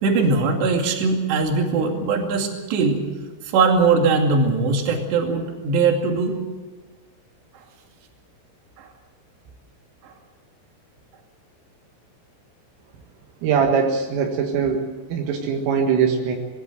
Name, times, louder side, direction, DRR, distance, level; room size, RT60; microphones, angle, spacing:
voice 1, 0.0-3.0 3.5-6.3 8.8-8.9, right 4 dB, 60° right, 2 dB, 4.5 m, -20 dB
voice 2, 13.4-14.8 15.1-16.4, right 6 dB, 80° right, 2 dB, 4.3 m, -21 dB
21.5 x 17.5 x 7.9 m, 1.3 s
omnidirectional pair, 5.8 m